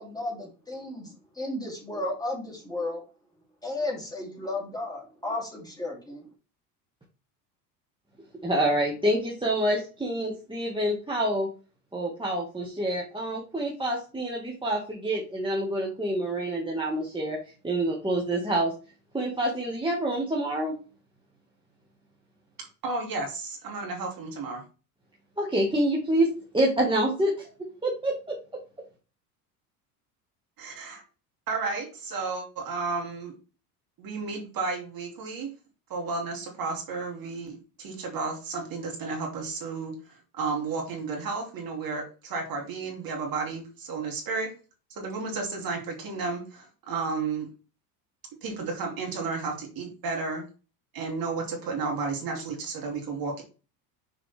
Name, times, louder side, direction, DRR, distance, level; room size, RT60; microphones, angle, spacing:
voice 1, 0.0-3.0 3.6-6.3, left 2 dB, 10° left, -2 dB, 3.1 m, -34 dB
voice 2, 8.4-11.5 11.9-17.4 17.6-18.7 19.1-20.7 25.4-27.5 27.8-28.4, right 1 dB, 10° right, -3 dB, 1.9 m, -27 dB
voice 3, 22.8-24.6 30.6-31.0 31.5-33.3 34.0-35.5 35.9-44.5 44.9-47.5 48.4-50.4 50.9-53.4, right 4 dB, 45° right, 1 dB, 2.8 m, -32 dB
6.5 x 4.7 x 3.5 m, 0.34 s
hypercardioid pair, 80°, 47 cm